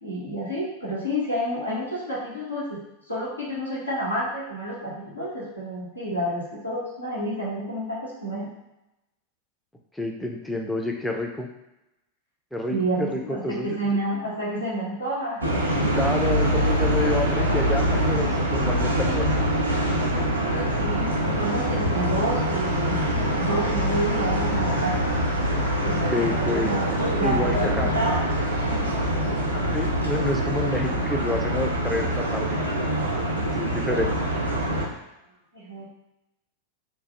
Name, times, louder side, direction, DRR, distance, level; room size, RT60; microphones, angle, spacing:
voice 1, 0.0-2.8 3.1-8.5 12.7-15.4 20.5-25.1 25.8-29.7 33.4-33.5 35.5-35.9, right 1 dB, 85° left, -7 dB, 1.0 m, -30 dB
voice 2, 9.9-11.5 12.5-13.7 15.9-19.5 26.1-26.7 27.2-27.9 29.7-32.6 33.4-34.1, left 2 dB, 5° left, 1 dB, 0.4 m, -28 dB
sound 1, 15.4-34.9, equal, 80° right, 0.5 m, -24 dB
3.1 x 2.2 x 2.9 m, 0.93 s
figure-of-eight pair, 90°, 0 cm